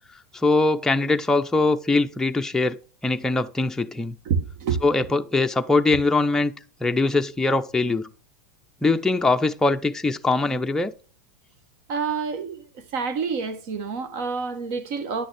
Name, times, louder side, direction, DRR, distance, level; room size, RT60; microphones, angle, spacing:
voice 1, 0.3-2.8 3.0-4.1 4.8-6.5 6.8-8.1 8.8-10.9, left 3 dB, 5° left, 0.5 m, -22 dB
voice 2, 4.2-4.8 11.9-15.3, right 5 dB, 60° right, 1.4 m, -28 dB
9.7 x 6.3 x 3.4 m
hypercardioid pair, 115°, 9 cm